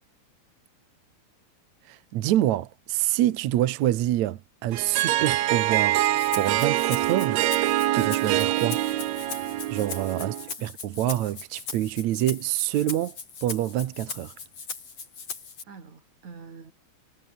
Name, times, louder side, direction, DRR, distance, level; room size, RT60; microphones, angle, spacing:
voice 1, 1.9-6.1 6.4-7.4 7.9-8.8 9.7-10.3 10.6-13.2 13.4-14.3, right 13 dB, 70° right, 1.8 m, -26 dB
Harp, 4.7-10.5, right 14 dB, 85° right, 1.5 m, -25 dB
Rattle (instrument), 6.0-15.6, left 5 dB, 40° left, 5.2 m, -39 dB
voice 2, 10.2-10.7 15.7-16.7, right 5 dB, 50° right, 5.7 m, -45 dB
omnidirectional pair, 4.5 m